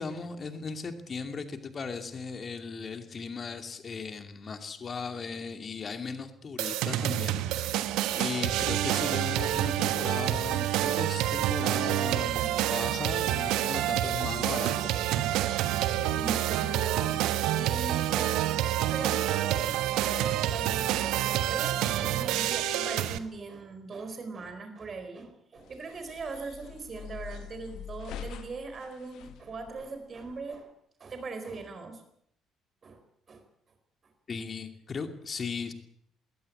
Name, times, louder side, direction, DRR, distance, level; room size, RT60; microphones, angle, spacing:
voice 1, 0.0-14.9 34.3-35.7, left 5 dB, 35° left, 7 dB, 2.6 m, -37 dB
sound 1, 6.6-23.2, right 13 dB, 60° right, 1.2 m, -28 dB
voice 2, 16.2-17.3 17.6-18.4 18.8-30.7 31.0-32.0 32.8-33.0 33.3-33.4, right 4 dB, 40° right, 8 dB, 4.4 m, -40 dB
sound 2, 25.6-30.6, left 8 dB, 55° left, 2.0 m, -45 dB
20.0 x 18.0 x 8.7 m, 0.71 s
figure-of-eight pair, 45°, 0 cm